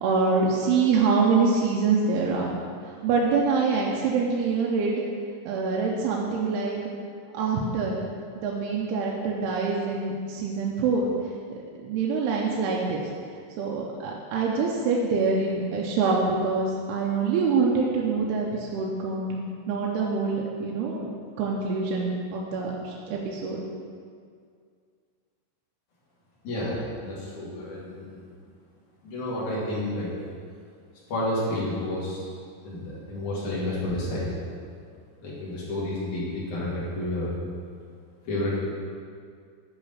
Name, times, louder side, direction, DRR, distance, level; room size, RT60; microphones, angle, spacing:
voice 1, 0.0-2.5 3.0-5.0 5.5-6.8 7.3-8.0 8.4-11.1 11.8-13.0 13.6-23.6, right 4 dB, 80° right, -3 dB, 2.7 m, -25 dB
voice 2, 26.4-28.2 29.0-30.1 31.1-32.2 32.6-34.3 35.2-37.3 38.2-38.6, left 1 dB, 50° left, -8 dB, 3.5 m, -30 dB
10.0 x 4.9 x 5.7 m, 2.2 s
omnidirectional pair, 4.6 m